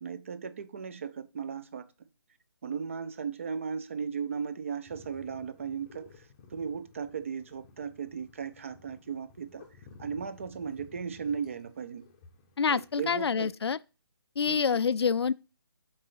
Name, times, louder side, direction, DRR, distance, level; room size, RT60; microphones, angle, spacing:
voice 1, 0.0-2.1 2.6-6.3 6.5-9.6 10.0-12.1 12.7-13.5 14.5-14.6, right 6 dB, 30° right, 0.4 m, -36 dB
sound 1, 4.9-13.6, left 4 dB, 15° left, 0.7 m, -55 dB
voice 2, 12.6-13.8 14.4-15.3, left 6 dB, 90° left, 0.4 m, -27 dB
5.3 x 3.9 x 5.6 m
hypercardioid pair, 165°, 13 cm